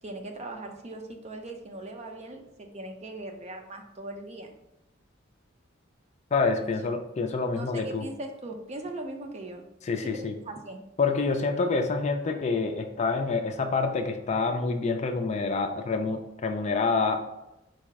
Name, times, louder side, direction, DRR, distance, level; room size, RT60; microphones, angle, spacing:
voice 1, 0.0-4.5 6.6-6.7 7.5-9.6 10.1-10.8, right 2 dB, 35° right, 4 dB, 0.6 m, -39 dB
voice 2, 6.3-8.1 9.8-10.3 11.0-17.2, left 4 dB, 35° left, 6 dB, 0.4 m, -27 dB
4.7 x 2.1 x 4.6 m, 0.90 s
head